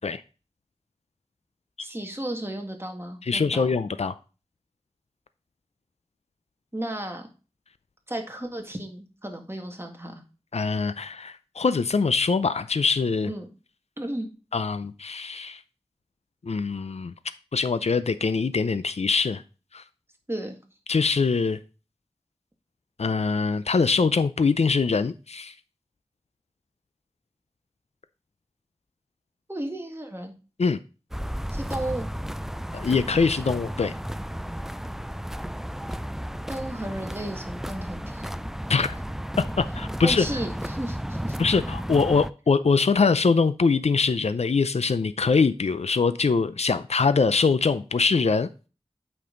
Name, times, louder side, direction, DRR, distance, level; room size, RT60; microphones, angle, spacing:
voice 1, 1.8-3.7 6.7-7.3 8.1-10.2 13.3-13.5 14.0-14.3 20.3-20.6 29.5-30.3 31.5-32.1 36.5-38.3 40.0-41.4, right 1 dB, 20° right, 3 dB, 1.9 m, -34 dB
voice 2, 3.2-4.2 10.5-13.3 14.5-15.6 16.4-17.1 17.5-19.4 19.7-19.8 20.9-21.6 23.0-25.5 30.6-30.8 32.7-33.9 38.7-38.9 39.4-40.3 41.4-48.5, left 4 dB, 90° left, 13 dB, 0.5 m, -23 dB
sound 1, 31.1-42.3, equal, 5° right, 0.4 m, -33 dB
8.5 x 5.4 x 3.8 m, 0.33 s
wide cardioid pair, 55°, 11 cm